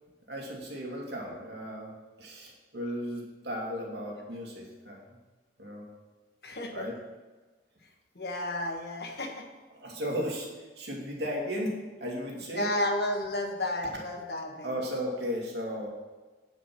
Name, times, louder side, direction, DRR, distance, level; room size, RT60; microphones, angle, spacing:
voice 1, 0.3-1.9 2.2-5.0 5.6-5.9 6.7-7.0 9.7-12.7 14.6-15.9, equal, 75° right, -2 dB, 2.4 m, -35 dB
voice 2, 6.4-6.9 8.1-9.5 12.6-14.7, left 1 dB, 65° left, 3 dB, 1.3 m, -32 dB
9.3 x 5.1 x 6.0 m, 1.3 s
head